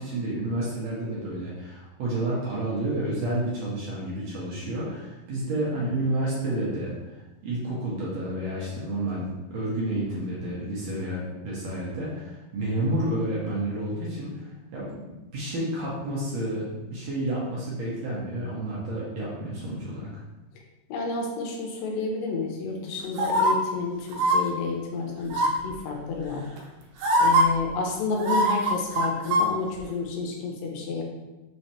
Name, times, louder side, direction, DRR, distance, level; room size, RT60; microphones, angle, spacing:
voice 1, 0.0-20.2, right 1 dB, 70° right, -6 dB, 1.8 m, -30 dB
voice 2, 20.9-26.5 27.2-31.0, left 3 dB, 85° left, 0 dB, 2.4 m, -30 dB
sound 1, 23.2-23.5 24.1-24.4 25.3-25.7 26.6-26.7 27.0-27.4 28.2-29.5 29.8-29.9, right 1 dB, 90° right, 2.3 m, -21 dB
5.6 x 3.1 x 2.9 m, 1.1 s
omnidirectional pair, 3.8 m